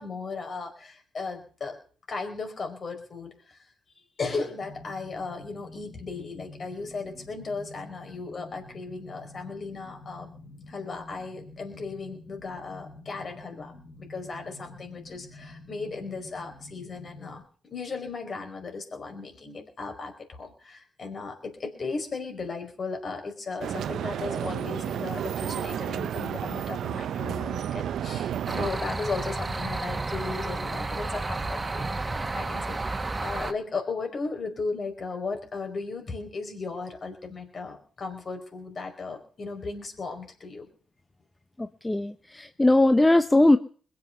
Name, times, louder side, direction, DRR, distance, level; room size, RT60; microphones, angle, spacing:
voice 1, 0.0-1.8 2.1-3.6 4.2-10.3 10.7-13.7 14.0-17.4 17.7-40.7, left 4 dB, 50° left, 4 dB, 4.9 m, -36 dB
sound 1, 4.6-17.4, left 2 dB, 75° left, 5.2 m, -48 dB
sound 2, 23.6-28.7, right 9 dB, 70° right, 0.7 m, -31 dB
sound 3, 28.5-33.5, right 3 dB, 30° right, 1.5 m, -31 dB
voice 2, 41.6-43.6, left 2 dB, 15° left, 9 dB, 0.9 m, -20 dB
21.5 x 7.9 x 6.7 m, 0.42 s
supercardioid pair, 50°, 0 cm